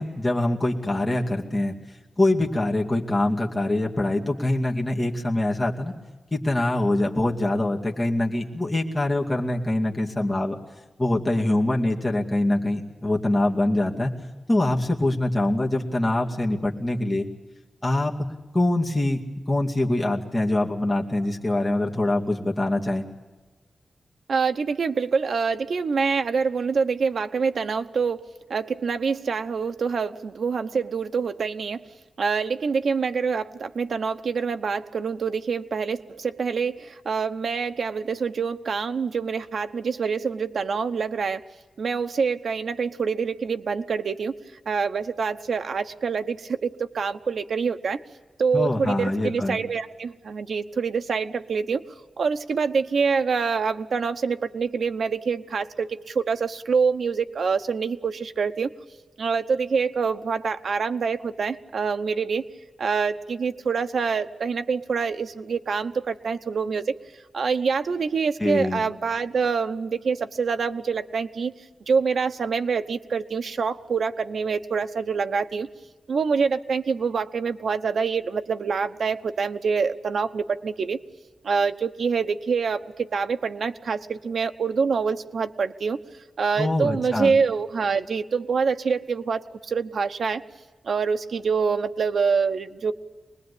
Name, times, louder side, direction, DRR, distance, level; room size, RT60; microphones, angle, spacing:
voice 1, 0.0-1.7 2.2-5.9 6.3-10.6 11.0-14.1 14.5-17.3 17.8-18.3 18.5-19.2 19.5-23.0 48.5-49.6 68.4-68.8 86.6-87.3, left 1 dB, 15° left, -2 dB, 2.4 m, -24 dB
voice 2, 24.3-31.8 32.2-41.4 41.8-44.3 44.7-48.0 48.4-51.8 52.2-58.7 59.2-62.4 62.8-66.8 67.3-71.5 71.9-75.7 76.1-81.0 81.4-86.0 86.4-90.4 90.9-92.9, right 5 dB, 65° right, 7 dB, 1.0 m, -26 dB
24.5 x 20.0 x 8.5 m, 1.2 s
wide cardioid pair, 175°, 0 cm